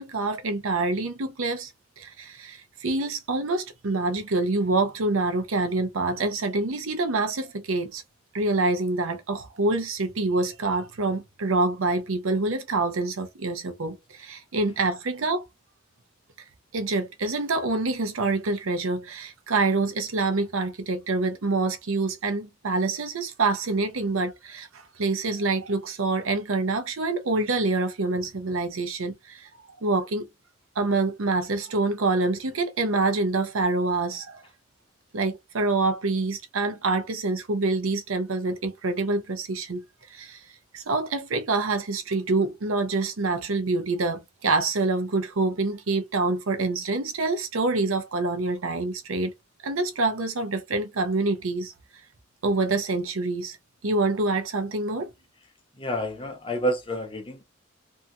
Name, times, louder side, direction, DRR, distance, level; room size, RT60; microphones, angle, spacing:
voice 1, 0.0-1.7 2.0-8.0 8.3-15.4 16.7-29.5 29.8-30.3 30.8-34.4 35.1-40.4 40.7-49.3 49.6-51.7 52.4-53.6 53.8-55.1, right 3 dB, 85° right, 0.7 m, -26 dB
voice 2, 55.8-57.4, equal, 25° left, 0.6 m, -29 dB
2.7 x 2.7 x 2.3 m
head